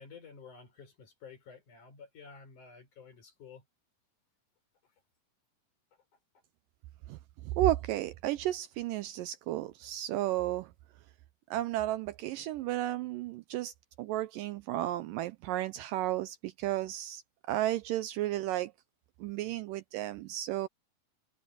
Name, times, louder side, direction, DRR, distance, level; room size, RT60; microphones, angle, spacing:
voice 1, 0.0-3.6, left 5 dB, 55° left, 5.8 m, -51 dB
voice 2, 7.5-10.7 11.5-17.2 17.5-18.7 19.2-20.7, right 14 dB, 80° right, 2.1 m, -33 dB
omnidirectional pair, 4.3 m